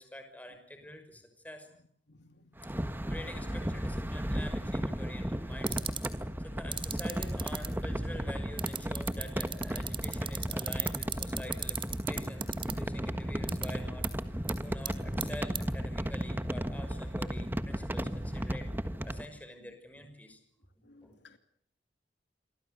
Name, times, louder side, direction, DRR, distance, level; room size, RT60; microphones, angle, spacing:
voice 1, 0.0-1.7 2.1-2.2 2.8-5.9 6.4-20.4 21.0-21.2, left 1 dB, 10° left, 7 dB, 5.9 m, -47 dB
voice 2, 2.1-2.4 20.8-21.4, left 3 dB, 70° left, 8 dB, 2.7 m, -58 dB
sound 1, 2.6-19.3, equal, 10° right, 1.4 m, -35 dB
sound 2, 5.7-6.1 6.7-7.7 8.6-12.7 13.5-13.7 14.0-14.1 14.5-14.6 14.9-15.2 15.6-15.7, right 8 dB, 30° right, 3.3 m, -33 dB
28.5 x 24.0 x 6.8 m, 0.65 s
head